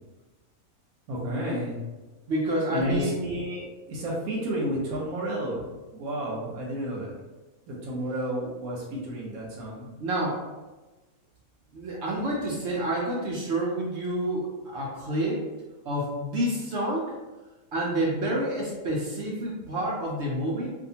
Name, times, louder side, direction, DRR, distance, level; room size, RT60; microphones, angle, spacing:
voice 1, 1.1-1.8 2.7-7.1 7.7-9.9, equal, 90° right, -3 dB, 1.1 m, -31 dB
voice 2, 2.3-3.2 10.0-10.5 11.7-15.4 15.8-17.1 17.7-20.7, right 1 dB, 65° right, -3 dB, 0.7 m, -28 dB
2.7 x 2.2 x 2.7 m, 1.1 s
omnidirectional pair, 1.5 m